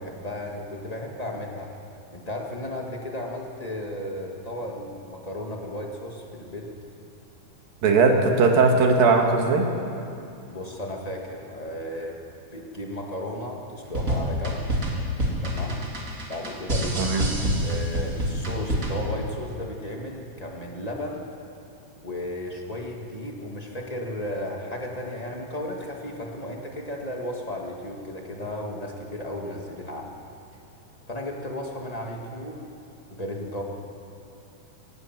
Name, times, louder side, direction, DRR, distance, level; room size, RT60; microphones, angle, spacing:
voice 1, 0.0-1.7 2.1-6.7 10.5-12.2 12.5-14.6 15.4-15.8 16.3-21.3 22.0-30.2 31.1-32.6 33.1-33.6, left 1 dB, 35° left, 0 dB, 0.6 m, -34 dB
voice 2, 7.8-9.7 17.0-17.2, right 4 dB, 70° right, 2 dB, 3.5 m, -19 dB
sound 1, 13.9-19.1, equal, 25° right, 2.6 m, -27 dB
24.0 x 18.0 x 6.0 m, 2.7 s
omnidirectional pair, 4.2 m